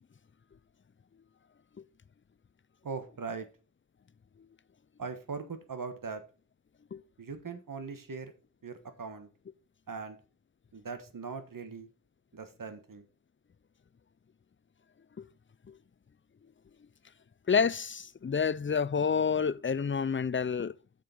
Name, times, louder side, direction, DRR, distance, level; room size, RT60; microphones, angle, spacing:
voice 1, 2.8-3.5 5.0-6.2 7.2-8.3 8.6-9.3 9.9-10.2 10.7-11.9 12.3-13.0, right 5 dB, 90° right, 1.4 m, -40 dB
voice 2, 17.5-20.8, left 6 dB, 40° left, 0.5 m, -29 dB
7.6 x 6.7 x 5.3 m
wide cardioid pair, 65°, 32 cm